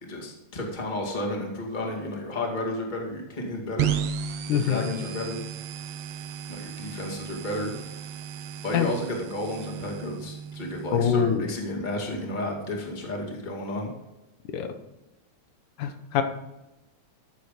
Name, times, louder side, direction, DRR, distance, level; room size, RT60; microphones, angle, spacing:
voice 1, 0.0-4.0 4.5-5.4 6.5-7.7 8.6-13.9, left 1 dB, 15° left, 0 dB, 1.9 m, -32 dB
sound 1, 3.8-11.4, right 8 dB, 70° right, 1.6 m, -34 dB
voice 2, 4.5-4.9 8.7-8.9 10.9-11.5 14.5-14.7 15.8-16.2, left 8 dB, 85° left, 7 dB, 2.6 m, -24 dB
14.0 x 7.3 x 5.1 m, 0.98 s
omnidirectional pair, 3.4 m